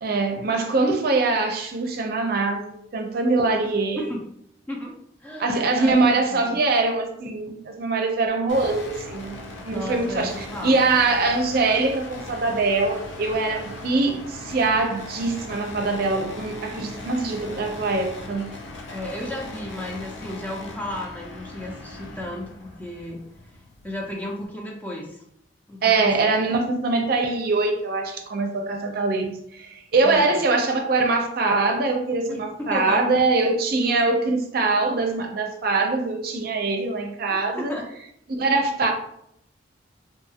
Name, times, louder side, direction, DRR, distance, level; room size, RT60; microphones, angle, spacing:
voice 1, 0.0-4.0 5.4-9.4 9.6-10.3 10.6-18.4 25.8-37.7 38.3-38.9, right 3 dB, 55° right, 3 dB, 0.5 m, -23 dB
voice 2, 3.6-4.2 4.7-6.6 9.7-10.9 18.9-23.3 23.8-25.2 25.7-26.5 30.0-30.4 32.3-33.0 37.3-37.9, left 1 dB, 10° left, -1 dB, 0.4 m, -34 dB
sound 1, 8.5-24.5, left 2 dB, 75° left, 0.5 m, -39 dB
2.7 x 2.3 x 2.7 m, 0.72 s
head